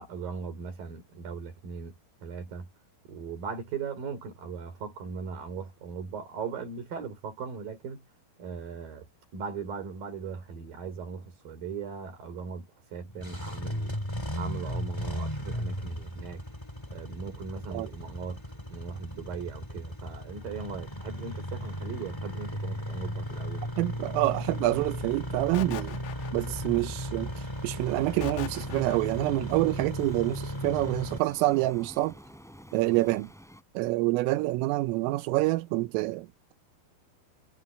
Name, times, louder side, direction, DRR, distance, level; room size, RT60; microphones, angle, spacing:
voice 1, 0.0-1.9 2.2-2.7 3.0-8.1 8.4-9.1 9.3-14.0 14.3-16.4 16.9-18.4 18.7-23.7, right 5 dB, 45° right, 5.5 m, -38 dB
Engine starting, 13.0-31.2, equal, 30° left, 0.4 m, -36 dB
voice 2, 23.8-26.0 26.3-27.3 27.6-32.2 32.7-33.3 33.7-36.5, right 19 dB, 80° right, 3.5 m, -27 dB
sound 1, 25.5-26.8 28.2-29.3, left 12 dB, 70° left, 3.5 m, -40 dB
sound 2, 27.8-33.6, equal, ahead, 5.7 m, -50 dB
omnidirectional pair, 5.9 m